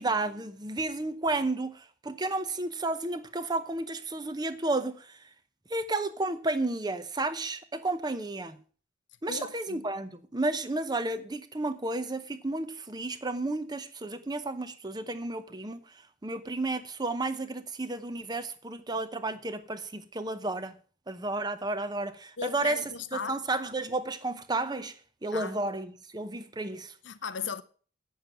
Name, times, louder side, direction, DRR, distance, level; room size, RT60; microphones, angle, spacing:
voice 1, 0.0-5.3 5.7-8.6 9.2-20.8 21.1-22.8 23.1-25.0 25.2-27.0, right 2 dB, 20° right, 0.8 m, -32 dB
voice 2, 9.3-9.8 22.4-23.4 25.3-25.6 27.0-27.6, left 6 dB, 70° left, 0.7 m, -37 dB
9.1 x 7.3 x 7.2 m
head